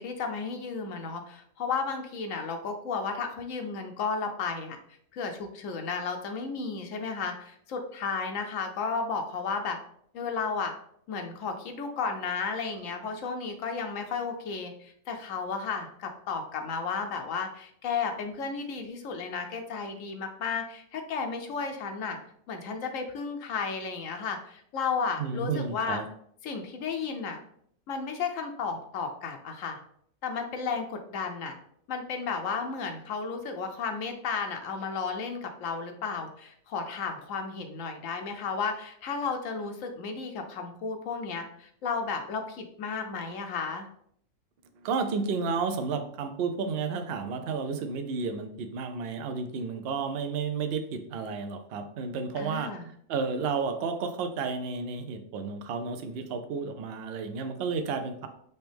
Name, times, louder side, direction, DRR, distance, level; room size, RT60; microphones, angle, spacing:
voice 1, 0.0-4.8 5.1-9.8 10.1-10.7 11.1-22.2 22.5-26.0 26.4-27.4 27.9-29.8 30.2-31.5 31.9-43.9 52.4-52.9, left 5 dB, 75° left, 5 dB, 1.0 m, -33 dB
voice 2, 25.2-26.1 44.8-52.7 53.1-58.3, right 5 dB, 60° right, 7 dB, 0.7 m, -32 dB
5.4 x 3.0 x 3.4 m, 0.67 s
omnidirectional pair, 1.4 m